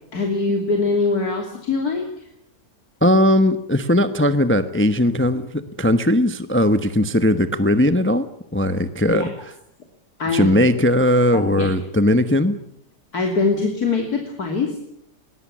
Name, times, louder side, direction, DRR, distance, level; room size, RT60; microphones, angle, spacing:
voice 1, 0.1-2.3 9.1-9.3 10.2-10.5 11.3-11.7 13.1-14.8, left 3 dB, 60° left, 3 dB, 3.4 m, -23 dB
voice 2, 3.0-8.3 8.5-9.3 10.3-12.6, left 1 dB, 10° left, 11 dB, 0.9 m, -18 dB
21.0 x 20.5 x 8.6 m, 0.74 s
omnidirectional pair, 1.8 m